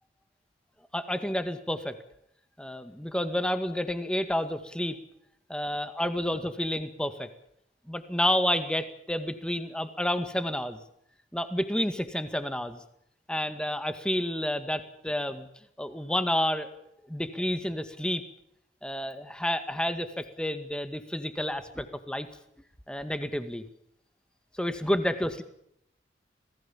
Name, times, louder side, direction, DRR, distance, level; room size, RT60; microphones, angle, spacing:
voice 1, 0.9-2.0 2.6-5.0 5.5-7.3 7.9-10.8 11.3-12.8 13.3-15.5 15.8-16.7 17.1-18.2 18.8-22.3 22.9-23.6 24.6-25.4, left 1 dB, 5° left, 9 dB, 2.0 m, -30 dB
27.5 x 19.0 x 7.4 m, 0.74 s
head